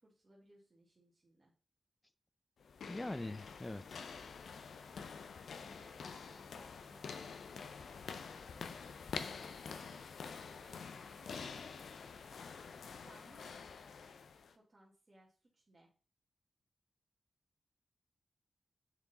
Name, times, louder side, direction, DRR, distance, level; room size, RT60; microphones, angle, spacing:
voice 1, 0.0-1.5 5.6-8.5 9.8-10.0 10.5-10.8 11.2-11.7 13.0-13.5 14.5-15.9, right 1 dB, 45° right, -4 dB, 1.5 m, -65 dB
sound 1, 2.6-14.5, left 5 dB, 85° left, 0.5 m, -47 dB
voice 2, 2.9-4.1, left 2 dB, 25° left, 13 dB, 0.5 m, -43 dB
7.4 x 3.7 x 4.0 m, 0.37 s
cardioid pair, 45°, 0 cm